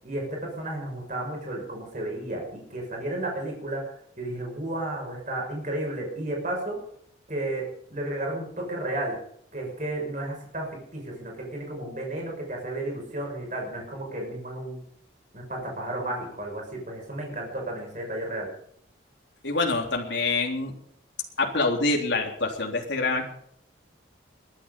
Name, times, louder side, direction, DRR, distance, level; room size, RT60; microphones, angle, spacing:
voice 1, 0.0-6.8 7.3-9.2 9.5-14.8 15.3-18.5, right 1 dB, 40° right, -1 dB, 6.0 m, -33 dB
voice 2, 19.4-20.7 21.4-23.2, left 3 dB, 70° left, 1 dB, 3.4 m, -26 dB
21.5 x 10.5 x 5.4 m, 0.66 s
head